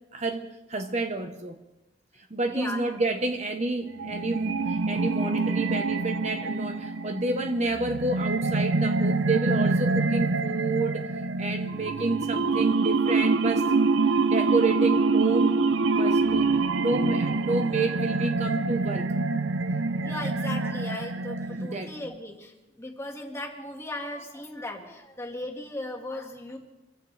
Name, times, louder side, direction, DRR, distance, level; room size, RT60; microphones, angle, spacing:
voice 1, 0.1-1.6 2.3-11.1 11.4-13.6 14.3-15.6 15.9-16.5 16.8-19.1 21.6-22.1, right 3 dB, 35° right, 6 dB, 1.0 m, -29 dB
voice 2, 2.4-2.8 16.0-16.1 20.0-26.6, left 1 dB, 15° left, 1 dB, 1.9 m, -37 dB
sound 1, 4.0-21.9, right 3 dB, 75° right, 0.7 m, -25 dB
26.0 x 15.5 x 3.4 m, 0.99 s
head